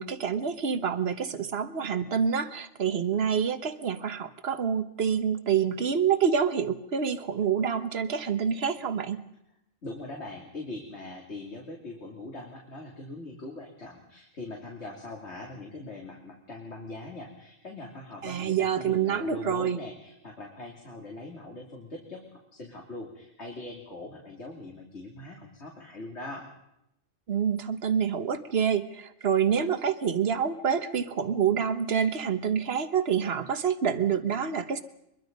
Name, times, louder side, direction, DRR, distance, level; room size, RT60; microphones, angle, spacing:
voice 1, 0.0-9.2 18.2-19.8 27.3-34.8, right 7 dB, 55° right, 11 dB, 1.4 m, -27 dB
voice 2, 9.8-26.5, left 2 dB, 60° left, -1 dB, 3.1 m, -41 dB
23.5 x 22.5 x 5.3 m, 0.83 s
omnidirectional pair, 1.3 m